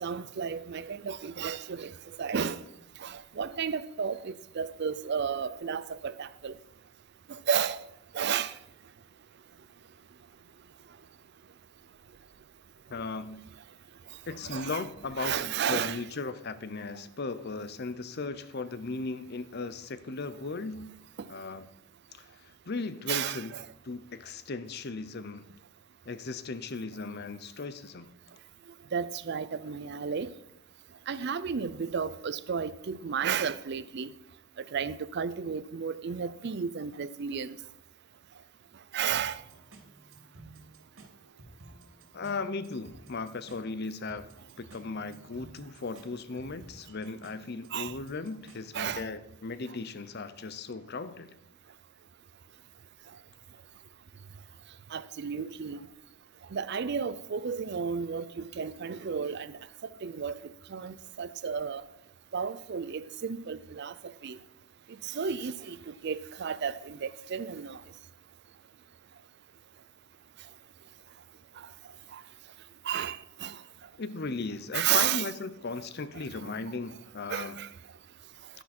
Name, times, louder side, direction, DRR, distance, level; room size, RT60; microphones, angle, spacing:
voice 1, 0.0-2.6 3.0-6.5 7.3-7.8 8.1-8.5 14.4-14.8 15.2-16.0 21.2-21.3 23.1-23.6 28.9-30.3 31.1-34.1 34.7-37.6 38.9-39.4 47.7-47.9 48.7-49.1 54.9-55.8 56.5-59.6 60.0-60.4 60.7-61.8 62.3-63.9 64.2-64.4 65.0-67.8 72.1-72.2 72.9-73.6 74.7-75.2 77.3-77.7, right 7 dB, 50° right, 0.4 m, -32 dB
voice 2, 12.9-13.5 14.2-20.9 21.3-21.7 22.1-23.6 23.8-25.5 26.1-28.1 42.1-44.3 44.6-51.3 74.0-77.6, left 3 dB, 50° left, 0.6 m, -37 dB
sound 1, 39.1-49.1, right 2 dB, 80° right, 2.4 m, -54 dB
11.0 x 10.0 x 4.3 m
head